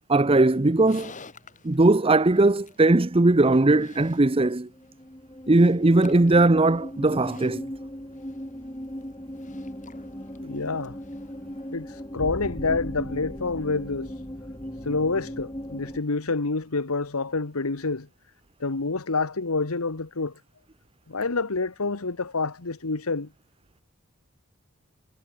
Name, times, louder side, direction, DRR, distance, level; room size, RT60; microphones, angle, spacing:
voice 1, 0.1-1.1 1.6-4.7 5.5-7.7, right 2 dB, 25° right, 0.7 m, -19 dB
Livestock farm animals working animals, 0.5-11.8, left 4 dB, 35° left, 3.8 m, -52 dB
sound 1, 4.7-16.0, equal, 20° left, 5.0 m, -37 dB
voice 2, 10.4-11.0 11.7-14.2 14.7-18.1 18.6-20.4 21.1-23.3, left 3 dB, 85° left, 1.3 m, -28 dB
head